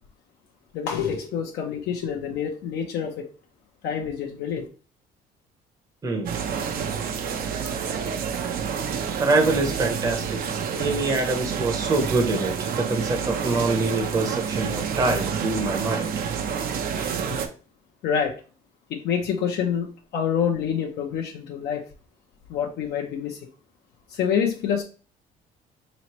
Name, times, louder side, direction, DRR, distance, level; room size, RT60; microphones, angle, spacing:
voice 1, 0.7-3.3 3.8-4.7 17.3-17.4 18.0-18.4 18.9-21.8 22.5-23.4 24.1-24.8, left 7 dB, 75° left, 0 dB, 0.7 m, -27 dB
voice 2, 6.0-6.4 9.2-10.4 10.7-16.1, right 3 dB, 20° right, 3 dB, 0.8 m, -25 dB
sound 1, 6.3-17.5, right 7 dB, 60° right, 0.7 m, -28 dB
4.1 x 3.1 x 3.0 m, 0.36 s
cardioid pair, 110°, 17 cm